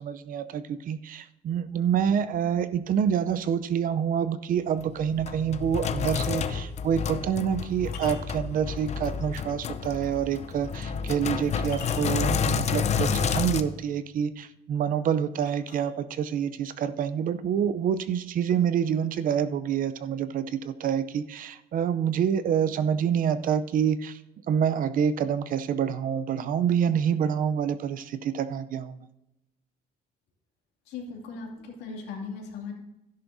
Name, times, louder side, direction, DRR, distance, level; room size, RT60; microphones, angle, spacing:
voice 1, 0.0-24.2 24.5-29.1, right 8 dB, 55° right, 14 dB, 0.6 m, -27 dB
Sink (filling or washing), 4.8-13.6, left 6 dB, 40° left, 0.7 m, -29 dB
sound 1, 7.8-9.3 9.8-9.9 10.8-10.9 11.4-12.4 13.1-13.9 15.4-16.4 17.3-17.4 17.8-18.2 18.5-19.5, left 6 dB, 65° left, 3.5 m, -47 dB
voice 2, 30.9-32.7, left 4 dB, 85° left, 0 dB, 2.6 m, -38 dB
12.5 x 11.0 x 2.7 m, 0.91 s
cardioid pair, 110°, 17 cm